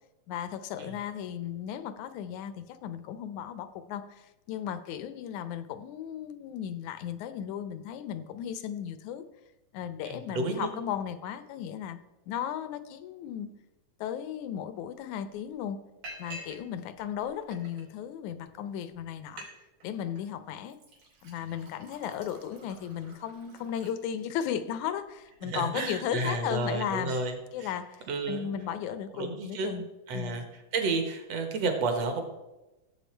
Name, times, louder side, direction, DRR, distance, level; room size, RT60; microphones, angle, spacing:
voice 1, 0.3-9.2 9.7-12.0 12.3-13.5 14.0-15.8 16.2-19.5 19.8-20.8 21.2-27.1 27.5-29.9 30.1-30.4, left 9 dB, 80° left, 12 dB, 2.1 m, -35 dB
voice 2, 10.0-10.7 25.4-27.7 28.1-28.5 29.1-29.8 30.1-30.4 30.7-32.2, right 3 dB, 60° right, 5 dB, 2.4 m, -31 dB
Liquid, 14.9-15.0 15.3-15.6 16.0-16.6 16.9-17.8 18.5-18.6 18.9-19.0 19.2-19.5 19.8-20.2 20.7-24.5 25.0-26.0 26.4-26.6 26.9-27.3, right 1 dB, 90° right, 4.4 m, -48 dB
15.5 x 7.8 x 4.5 m, 1.0 s
omnidirectional pair, 3.5 m